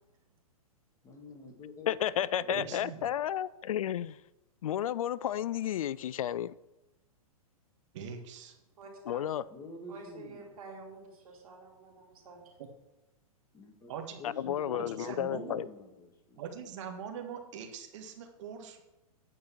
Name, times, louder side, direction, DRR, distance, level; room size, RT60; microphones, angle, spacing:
voice 1, 1.0-1.9 2.4-2.6 9.5-10.6 13.5-13.9 14.2-16.4, left 1 dB, 15° left, 1.9 m, -47 dB
voice 2, 1.9-4.2 4.6-6.5 9.1-9.4 14.2-15.7, left 10 dB, 65° left, 0.4 m, -32 dB
voice 3, 2.5-3.0 7.9-8.6 12.6-12.7 13.9-14.2 14.7-15.6 16.4-18.8, right 7 dB, 55° right, 1.7 m, -42 dB
voice 4, 8.8-9.2 9.9-12.4, right 3 dB, 70° right, 3.2 m, -49 dB
9.2 x 5.3 x 7.2 m
hypercardioid pair, 120°, 19 cm